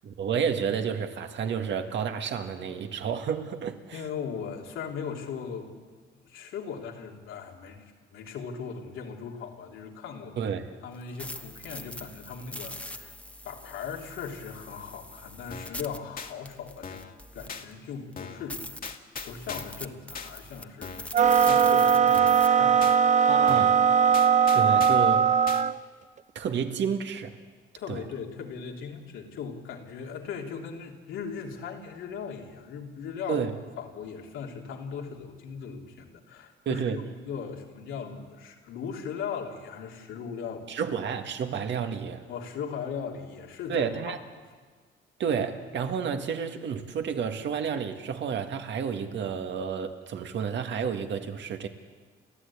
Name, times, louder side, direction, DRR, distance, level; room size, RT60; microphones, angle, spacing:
voice 1, 0.0-4.0 10.4-10.6 23.3-23.9 24.5-25.3 26.4-27.4 27.9-28.0 33.3-33.5 36.7-37.0 40.7-42.3 43.7-44.2 45.2-51.7, right 7 dB, 65° right, 1.9 m, -30 dB
voice 2, 3.9-5.8 6.2-10.5 10.8-13.2 13.4-17.0 17.3-18.7 19.2-22.9 23.2-23.3 27.8-33.4 33.8-40.9 42.3-44.1, left 6 dB, 85° left, 3.0 m, -38 dB
sound 1, 10.9-17.7 18.1-18.2 18.5-22.5, left 1 dB, 5° left, 1.1 m, -42 dB
sound 2, 15.5-15.8 16.2-16.3 16.8-17.2 17.5-17.7 18.2-18.5 18.8-19.8 20.1-20.3 20.8-21.1 21.5-21.6 22.1-22.5 22.8-23.0 23.5-23.8 24.1-25.1 25.5-25.6, left 5 dB, 45° left, 1.9 m, -40 dB
sound 3, 21.1-25.8, right 7 dB, 35° right, 0.7 m, -20 dB
30.0 x 13.0 x 8.6 m
cardioid pair, 90°, 20 cm